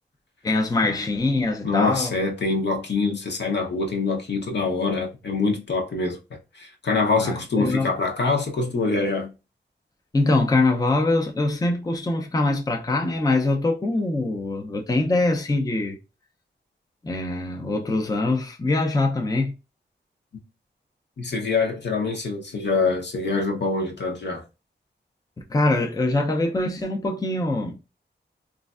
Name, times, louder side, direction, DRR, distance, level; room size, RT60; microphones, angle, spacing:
voice 1, 0.4-2.1 7.2-7.9 10.1-16.0 17.0-19.5 25.5-27.8, left 2 dB, 20° left, 0.5 m, -23 dB
voice 2, 1.6-6.2 6.5-9.3 21.2-24.4, left 3 dB, 65° left, 0.8 m, -25 dB
3.1 x 2.4 x 2.4 m
wide cardioid pair, 105°, 19 cm